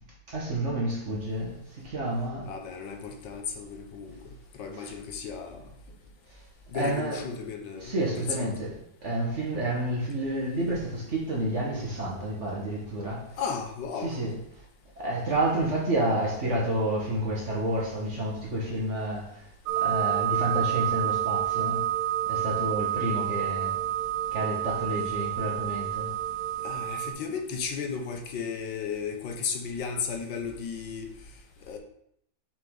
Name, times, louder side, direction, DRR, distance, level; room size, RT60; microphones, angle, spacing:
voice 1, 0.3-2.5 4.7-4.9 6.7-7.2 7.8-13.4 14.0-14.4 15.0-19.5 19.7-21.9 22.3-23.8 24.3-26.2, right 1 dB, 40° right, 1.5 m, -30 dB
voice 2, 2.4-5.6 6.7-8.0 8.4-8.5 13.4-14.2 26.6-31.1 31.7-31.8, left 6 dB, 70° left, 1.5 m, -35 dB
sound 1, 19.7-27.1, right 12 dB, 70° right, 1.1 m, -29 dB
6.4 x 5.1 x 3.8 m
omnidirectional pair, 2.1 m